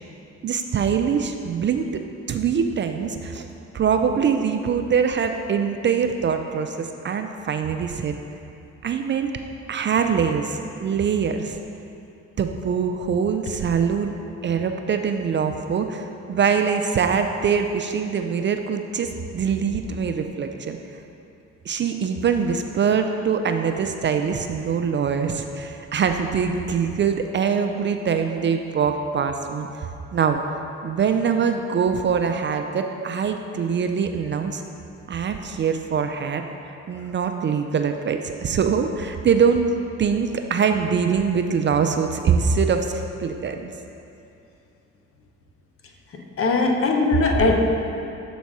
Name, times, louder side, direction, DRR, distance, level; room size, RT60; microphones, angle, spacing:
voice 1, 0.4-3.5 3.7-8.1 8.8-9.3 9.7-11.6 12.4-14.1 14.4-20.8 21.7-29.7 30.1-30.4 30.8-34.6 35.1-36.4 36.9-39.7 40.0-42.9 43.2-43.7, right 6 dB, 40° right, 6 dB, 0.4 m, -23 dB
voice 2, 46.1-47.6, left 3 dB, 45° left, 2 dB, 0.8 m, -20 dB
7.3 x 4.1 x 4.7 m, 2.7 s
cardioid pair, 90°, 30 cm